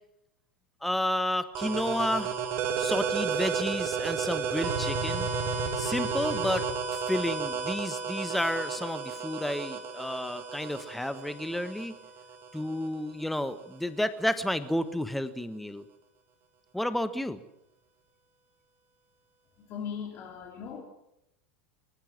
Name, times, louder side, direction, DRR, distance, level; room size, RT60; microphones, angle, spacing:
voice 1, 0.8-2.3 2.8-5.3 5.8-6.7 6.9-11.9 12.5-15.8 16.7-17.4, left 1 dB, ahead, 12 dB, 1.3 m, -31 dB
sound 1, 1.5-12.9, right 5 dB, 40° right, 3.6 m, -32 dB
voice 2, 19.6-20.8, left 7 dB, 40° left, 1 dB, 3.7 m, -38 dB
25.0 x 15.5 x 7.6 m, 0.83 s
figure-of-eight pair, 80°, 6 cm